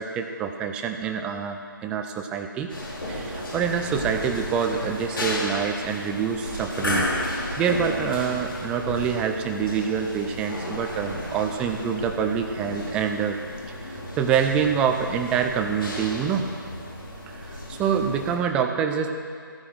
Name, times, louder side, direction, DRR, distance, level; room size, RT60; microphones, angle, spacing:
voice 1, 0.0-2.7 3.1-13.4 13.8-16.5 17.3-19.1, right 7 dB, 10° right, 5 dB, 0.5 m, -26 dB
sound 1, 2.7-18.4, left 1 dB, 70° left, 4.0 m, -33 dB
15.5 x 10.0 x 6.4 m, 2.2 s
figure-of-eight pair, 145°, 12 cm